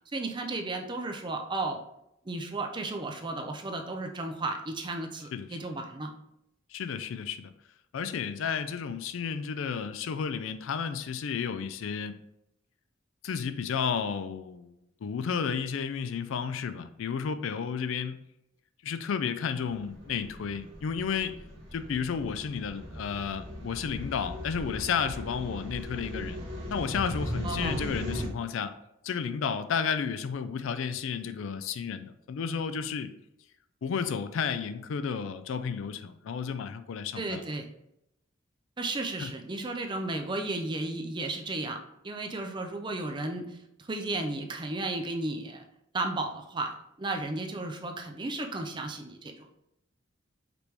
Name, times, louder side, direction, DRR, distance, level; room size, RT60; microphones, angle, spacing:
voice 1, 0.1-1.8 2.2-6.1 27.4-27.9 37.2-37.7 38.8-45.6 45.9-46.7 47.0-49.5, right 2 dB, 20° right, 4 dB, 0.4 m, -34 dB
voice 2, 6.7-7.5 7.9-12.1 13.2-18.2 18.8-21.3 21.7-26.4 26.7-28.7 29.0-33.1 33.8-37.5 39.2-39.3, left 6 dB, 70° left, 11 dB, 0.4 m, -32 dB
sound 1, 19.6-28.3, left 1 dB, 65° right, 1.2 m, -38 dB
5.1 x 3.0 x 3.2 m, 0.81 s
head